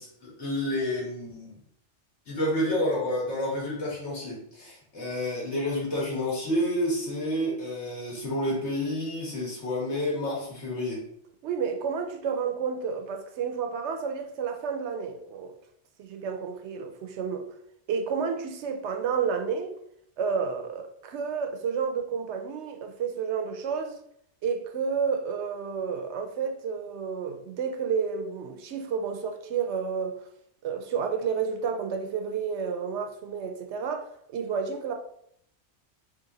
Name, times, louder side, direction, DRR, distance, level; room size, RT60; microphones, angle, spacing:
voice 1, 0.0-1.6 2.3-11.0, left 1 dB, 70° left, 1.9 m, -29 dB
voice 2, 11.4-15.5 16.0-17.5 17.9-19.7 20.2-24.0 24.4-30.2 30.6-34.9, right 6 dB, 75° right, 0.9 m, -30 dB
3.8 x 2.9 x 3.9 m
omnidirectional pair, 1.2 m